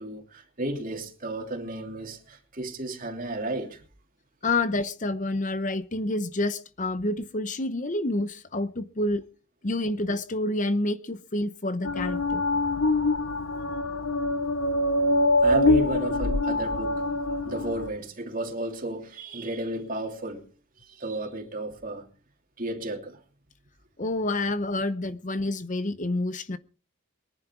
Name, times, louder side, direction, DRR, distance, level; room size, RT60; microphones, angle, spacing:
voice 1, 0.0-3.8 15.4-17.0 17.4-20.4 20.8-22.1 22.6-23.2, right 1 dB, 40° right, 2.9 m, -33 dB
voice 2, 4.4-9.2 9.6-12.4 24.0-26.6, left 2 dB, 35° left, 0.8 m, -28 dB
sound 1, 11.8-17.9, left 2 dB, 65° left, 0.9 m, -24 dB
23.0 x 11.0 x 4.6 m
head